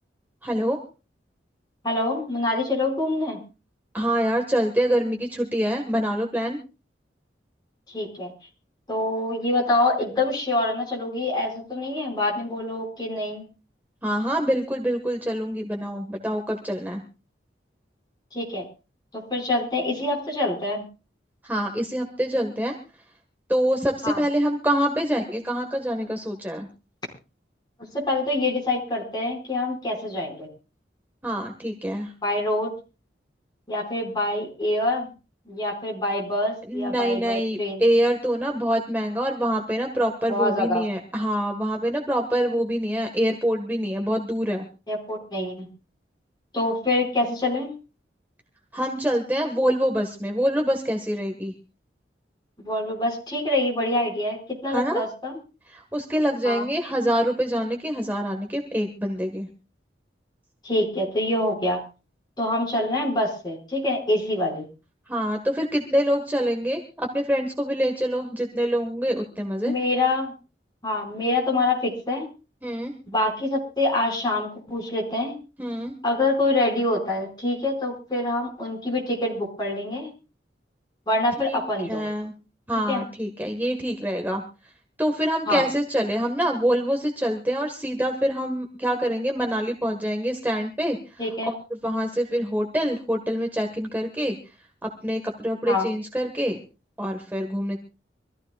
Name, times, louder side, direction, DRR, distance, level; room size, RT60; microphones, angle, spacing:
voice 1, 0.4-0.8 3.9-6.6 14.0-17.0 21.4-22.8 23.5-26.7 31.2-32.1 36.7-44.6 48.7-51.5 54.7-55.0 55.7-59.5 65.1-69.7 72.6-72.9 75.6-75.9 81.4-82.3 82.7-84.4 85.0-91.2 91.5-91.6 91.8-94.3 94.8-96.6 97.0-97.8, equal, 10° right, 2 dB, 1.5 m, -25 dB
voice 2, 1.8-3.4 7.9-8.3 8.9-13.4 18.3-18.6 19.1-20.8 24.0-24.2 27.9-30.5 32.2-32.7 33.7-35.1 35.5-37.8 40.3-40.8 44.9-45.7 46.5-47.7 52.6-55.3 56.4-56.6 60.6-61.8 62.4-64.7 69.6-70.3 70.8-72.3 73.1-75.4 76.0-80.1 81.1-82.0 82.9-83.0 85.5-85.6 91.2-91.5 95.7-95.9, left 2 dB, 25° left, -1 dB, 5.2 m, -25 dB
25.5 x 14.5 x 2.4 m, 0.32 s
head